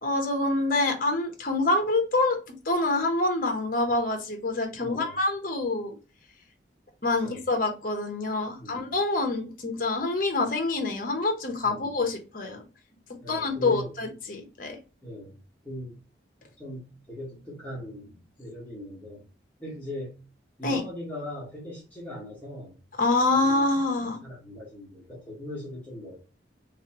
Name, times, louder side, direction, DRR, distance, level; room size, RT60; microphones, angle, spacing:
voice 1, 0.0-2.4 2.6-6.0 7.0-12.6 13.3-14.8 20.6-20.8 23.0-24.2, left 2 dB, 45° left, 4 dB, 0.9 m, -26 dB
voice 2, 4.8-5.2 7.2-7.4 8.6-8.9 11.6-12.0 13.2-13.9 15.0-15.4 15.6-15.9 16.6-19.3 19.6-20.2 20.6-22.7 23.3-23.5 24.2-26.2, left 1 dB, 10° left, -6 dB, 1.4 m, -39 dB
3.3 x 3.2 x 2.9 m, 0.33 s
head